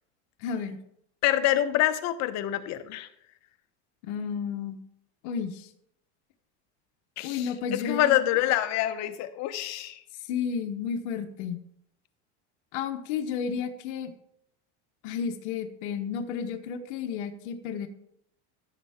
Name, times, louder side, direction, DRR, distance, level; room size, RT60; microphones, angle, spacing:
voice 1, 0.4-0.8 4.0-4.8 5.2-5.7 7.2-8.2 10.2-11.6 12.7-14.1 15.0-17.9, left 7 dB, 75° left, 5 dB, 1.0 m, -32 dB
voice 2, 1.2-3.1 7.2-10.0, left 13 dB, 50° left, 10 dB, 0.9 m, -26 dB
14.5 x 6.4 x 3.6 m, 0.74 s
supercardioid pair, 130°, 35 cm